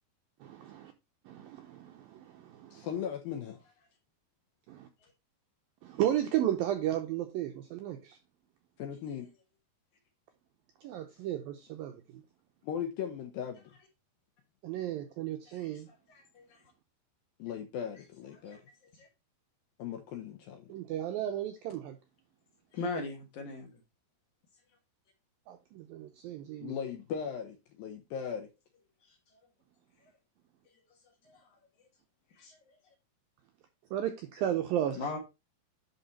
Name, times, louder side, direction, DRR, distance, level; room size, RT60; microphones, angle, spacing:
voice 1, 0.4-0.9 1.3-2.9 4.7-4.9 5.8-8.2 10.8-12.2 14.6-15.9 20.7-22.0 25.5-26.7 33.9-35.1, right 11 dB, 85° right, 2.1 m, -34 dB
voice 2, 2.7-3.6 8.8-9.3 12.6-13.7 17.4-18.6 19.8-20.7 26.6-28.5, left 8 dB, 75° left, 2.2 m, -38 dB
voice 3, 15.5-15.8 16.1-16.6 18.5-18.6 18.9-19.1 22.7-23.7 31.2-31.4 32.4-32.7 34.9-35.2, left 3 dB, 60° left, 2.3 m, -39 dB
11.0 x 4.1 x 4.1 m
omnidirectional pair, 5.0 m